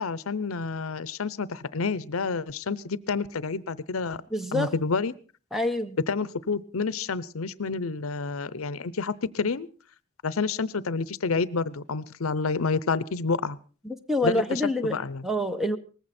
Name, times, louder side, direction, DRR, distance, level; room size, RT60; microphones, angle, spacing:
voice 1, 0.0-4.2 4.5-5.1 6.1-9.7 10.2-13.6 14.2-14.6 14.9-15.2, left 4 dB, 75° left, 18 dB, 0.7 m, -29 dB
voice 2, 4.3-4.7 5.5-6.0 13.8-15.8, left 1 dB, ahead, 8 dB, 1.0 m, -27 dB
19.0 x 15.0 x 4.3 m, 0.38 s
head